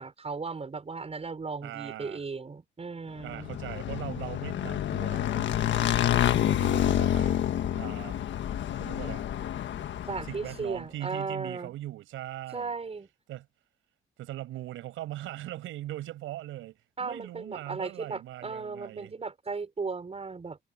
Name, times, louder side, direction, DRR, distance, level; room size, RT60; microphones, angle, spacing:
voice 1, 0.0-3.5 10.0-11.7 12.5-13.1 17.0-20.6, right 4 dB, 30° right, 6.1 m, -36 dB
voice 2, 1.6-2.2 3.2-8.2 8.7-9.3 10.2-12.7 13.3-13.5 14.2-19.1, right 14 dB, 90° right, 6.7 m, -40 dB
Motorcycle / Engine, 3.3-10.6, left 11 dB, 70° left, 1.6 m, -28 dB
cardioid pair, 90°, 20 cm